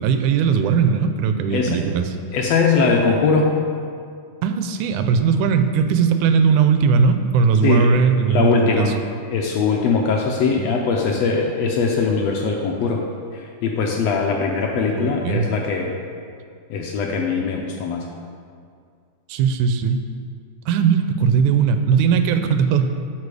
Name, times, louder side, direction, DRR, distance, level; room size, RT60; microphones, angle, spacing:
voice 1, 0.0-2.2 4.4-8.9 10.6-10.7 14.9-15.5 19.3-20.0 20.7-22.9, right 6 dB, 85° right, 8 dB, 2.1 m, -18 dB
voice 2, 2.3-3.5 7.6-7.9 8.3-9.0 9.3-13.0 13.3-16.0 16.7-18.0, left 4 dB, 75° left, 0 dB, 1.6 m, -21 dB
12.5 x 4.7 x 4.8 m, 2.3 s
omnidirectional pair, 3.5 m